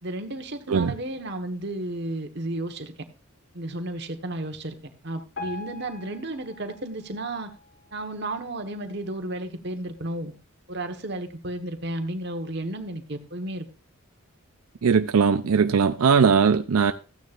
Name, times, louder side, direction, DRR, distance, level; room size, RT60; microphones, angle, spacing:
voice 1, 0.0-2.9 3.5-4.7 5.0-7.5 7.9-10.3 10.7-13.6, right 1 dB, 50° right, 1.3 m, -33 dB
Piano, 5.3-8.4 9.0-9.1 9.4-9.5 10.2-10.3 10.9-11.0, left 3 dB, 55° left, 4.1 m, -42 dB
voice 2, 14.8-16.9, right 6 dB, 85° right, 0.5 m, -19 dB
14.5 x 9.4 x 2.5 m
head